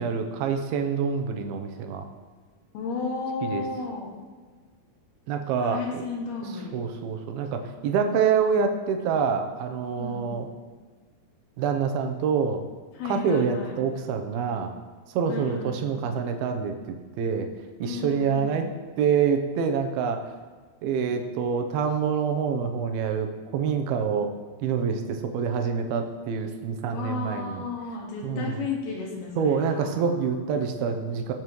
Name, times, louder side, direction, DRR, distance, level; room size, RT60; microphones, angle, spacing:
voice 1, 0.0-2.0 3.4-3.6 5.3-6.1 6.7-10.5 11.6-12.6 13.0-14.7 15.1-16.7 17.2-17.5 17.8-18.7 19.0-20.2 20.8-24.3 24.6-27.7 28.2-28.6 29.4-31.3, right 6 dB, 80° right, 5 dB, 2.7 m, -26 dB
voice 2, 2.7-4.1 5.6-6.8 10.0-10.4 13.0-13.8 15.3-16.0 17.8-18.5 26.9-30.2, left 4 dB, 85° left, -1 dB, 3.8 m, -33 dB
17.5 x 7.3 x 3.1 m, 1.4 s
omnidirectional pair, 4.4 m